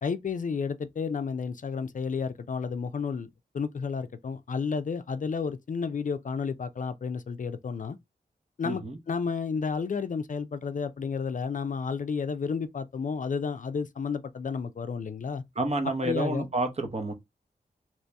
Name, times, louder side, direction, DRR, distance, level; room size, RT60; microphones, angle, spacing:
voice 1, 0.0-3.3 3.5-8.0 8.6-15.4 16.0-16.5, left 5 dB, 50° left, 0.4 m, -31 dB
voice 2, 8.6-9.0 15.6-17.1, right 2 dB, 40° right, 0.9 m, -29 dB
3.0 x 2.7 x 3.3 m
cardioid pair, 55°, 17 cm